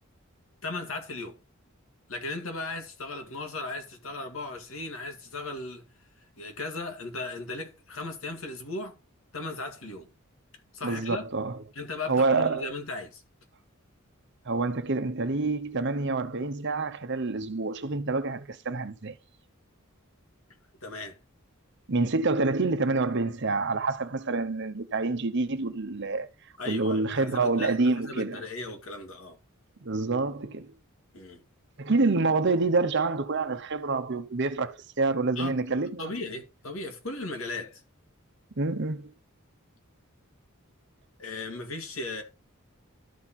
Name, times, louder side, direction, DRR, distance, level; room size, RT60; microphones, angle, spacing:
voice 1, 0.6-1.4 2.1-5.9 6.4-9.0 9.3-10.1 10.7-11.2 11.7-13.2 20.8-21.2 26.6-29.4 31.1-31.4 35.4-35.6 36.0-37.8 41.2-42.2, left 2 dB, 70° left, 2.0 m, -37 dB
voice 2, 10.8-11.6 12.1-12.7 14.5-19.1 21.9-26.3 26.6-28.4 29.8-30.7 31.8-36.1 38.6-39.1, right 3 dB, 55° right, 0.9 m, -27 dB
12.5 x 4.3 x 4.3 m
head